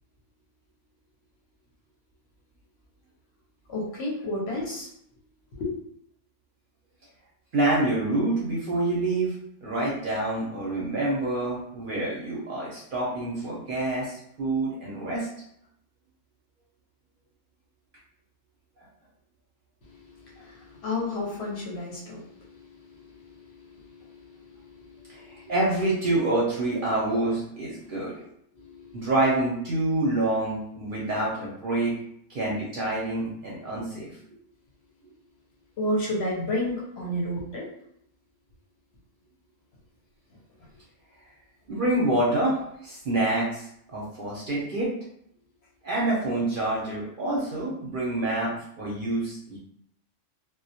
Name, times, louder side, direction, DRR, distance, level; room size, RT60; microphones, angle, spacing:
voice 1, 3.7-4.9 5.5-5.8 19.8-25.5 27.7-28.3 28.5-29.1 30.9-31.2 32.5-32.6 33.7-33.8 35.8-37.7, left 1 dB, 65° left, -4 dB, 0.8 m, -33 dB
voice 2, 7.5-9.3 9.6-15.3 25.1-28.2 28.9-31.9 32.3-34.1 41.7-44.9 45.8-49.6, right 2 dB, 55° right, -5 dB, 0.6 m, -27 dB
2.2 x 2.1 x 2.7 m, 0.72 s
omnidirectional pair, 1.3 m